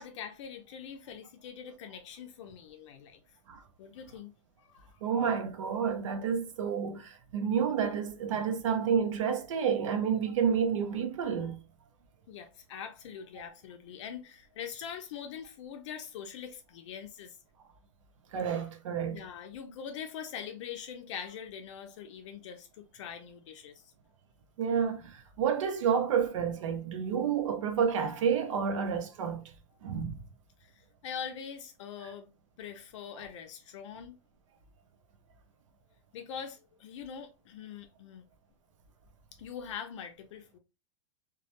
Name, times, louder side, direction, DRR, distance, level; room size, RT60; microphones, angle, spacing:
voice 1, 0.0-3.2 3.8-4.3 4.6-5.0 12.3-17.4 19.1-23.9 30.6-30.7 31.0-32.3 32.6-34.2 36.1-38.2 39.4-40.6, left 7 dB, 70° left, 0.4 m, -43 dB
voice 2, 5.0-11.6 18.3-19.2 24.6-29.4 29.8-30.1, right 7 dB, 85° right, 0.6 m, -30 dB
2.2 x 2.0 x 2.8 m
supercardioid pair, 145°, 16 cm